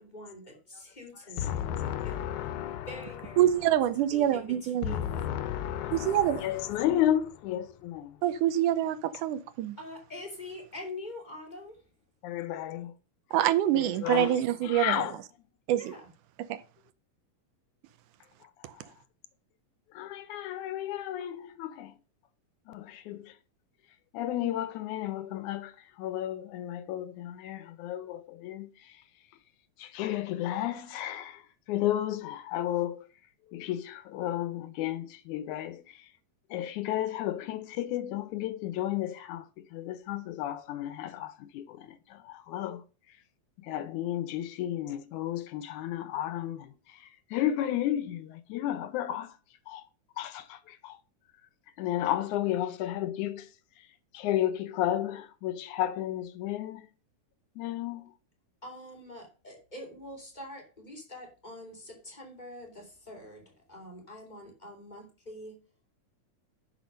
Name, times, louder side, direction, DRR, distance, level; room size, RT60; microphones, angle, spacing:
voice 1, 0.0-2.3 2.7-3.7 4.1-5.3 9.8-11.8 15.7-16.1 58.6-63.4 63.7-65.6, left 1 dB, 15° left, 2.3 m, -45 dB
voice 2, 1.4-3.3 4.8-8.2 12.2-13.0 13.7-15.2 18.4-18.7 19.9-22.0 22.7-23.4 24.1-29.0 29.8-33.1 33.5-36.1 36.5-43.2 43.6-49.4 49.7-49.9 50.2-51.0 51.8-53.9 54.1-56.9 57.6-58.1, left 12 dB, 75° left, 2.0 m, -33 dB
voice 3, 3.4-5.0 5.9-6.4 8.2-9.8 13.3-15.0 15.7-15.9 16.5-16.6, right 12 dB, 85° right, 2.3 m, -26 dB
10.5 x 6.2 x 5.2 m
omnidirectional pair, 3.6 m